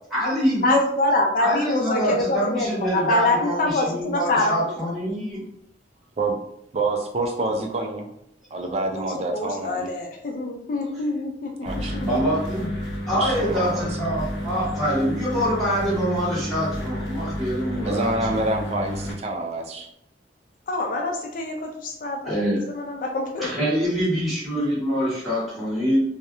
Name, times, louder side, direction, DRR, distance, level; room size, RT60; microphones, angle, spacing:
voice 1, 0.1-0.8 1.4-5.4 11.8-12.7 13.1-18.1 22.2-22.6 23.4-26.0, equal, ahead, -10 dB, 1.0 m, -25 dB
voice 2, 0.6-4.7 9.0-9.1 9.3-12.2 20.7-22.4 22.7-23.5, left 2 dB, 45° left, 2 dB, 0.4 m, -25 dB
voice 3, 6.7-8.1 8.5-9.9 11.6-12.0 13.1-14.0 17.8-19.9, right 2 dB, 35° right, 2 dB, 0.4 m, -27 dB
sound 1, 11.6-19.1, equal, 80° left, 0.7 m, -31 dB
2.3 x 2.0 x 2.9 m, 0.74 s
head